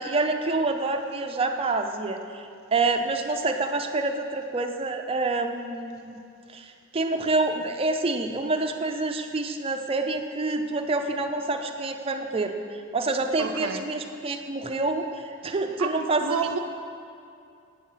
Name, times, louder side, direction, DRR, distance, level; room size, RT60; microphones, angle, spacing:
voice 1, 0.0-2.4 2.7-6.2 6.5-16.4, right 3 dB, 25° right, 5 dB, 0.4 m, -27 dB
voice 2, 13.4-13.9 15.8-16.6, right 6 dB, 75° right, 6 dB, 0.5 m, -31 dB
7.5 x 7.4 x 5.6 m, 2.5 s
head